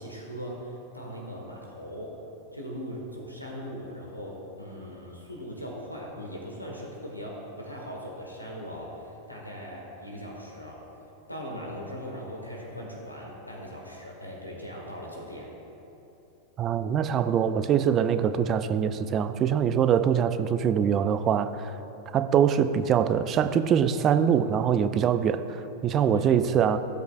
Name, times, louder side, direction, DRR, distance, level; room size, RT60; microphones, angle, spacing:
voice 1, 0.0-2.2 2.5-10.8 11.3-15.5 26.0-26.3, equal, 85° left, -2 dB, 1.4 m, -39 dB
voice 2, 16.6-21.8 22.1-26.8, right 8 dB, 30° right, 11 dB, 0.5 m, -23 dB
17.0 x 7.9 x 2.4 m, 3.0 s
figure-of-eight pair, 90°, 0 cm